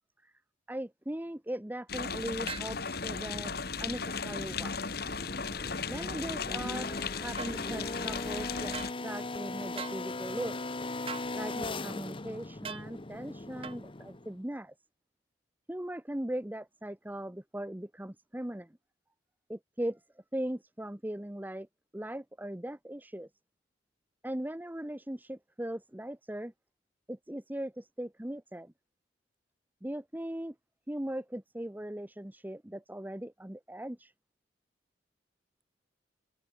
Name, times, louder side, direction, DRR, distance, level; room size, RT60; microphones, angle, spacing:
voice 1, 0.7-4.8 5.9-8.8 9.0-10.6 11.3-14.7 15.7-18.8 19.5-21.7 21.9-23.3 24.2-26.5 27.1-28.7 29.8-30.6 30.9-34.1, right 1 dB, 10° right, 0.8 m, -39 dB
sound 1, 1.9-8.9, left 5 dB, 55° left, 2.1 m, -36 dB
sound 2, 2.5-2.7 7.4-7.5 8.7-8.9 9.8-10.0 11.1-11.3 12.6-12.9 13.6-13.8, right 6 dB, 30° right, 0.9 m, -40 dB
sound 3, 2.6-14.4, left 2 dB, 30° left, 1.0 m, -40 dB
open air
head